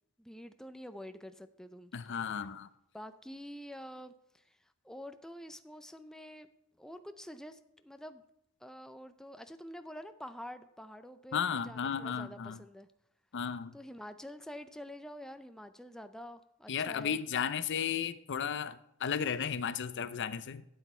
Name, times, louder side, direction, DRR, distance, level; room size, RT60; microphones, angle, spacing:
voice 1, 0.2-1.9 2.9-4.6 4.8-6.5 6.8-8.2 8.6-12.9 13.7-17.2, equal, 5° left, 0.4 m, -47 dB
voice 2, 1.9-2.7 11.3-12.6 13.3-13.7 16.7-20.7, left 7 dB, 60° left, 0.5 m, -34 dB
12.5 x 8.2 x 4.3 m
head